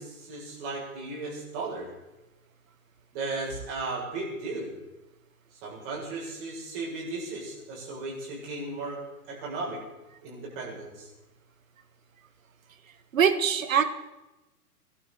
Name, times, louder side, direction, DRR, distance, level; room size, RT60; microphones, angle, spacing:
voice 1, 0.0-1.9 3.1-4.7 5.6-9.0 9.3-9.8 10.2-11.1, right 3 dB, 35° right, -4 dB, 7.7 m, -35 dB
voice 2, 13.1-13.8, right 7 dB, 55° right, 10 dB, 1.6 m, -22 dB
23.5 x 12.5 x 4.4 m, 1.0 s
figure-of-eight pair, 115°, 47 cm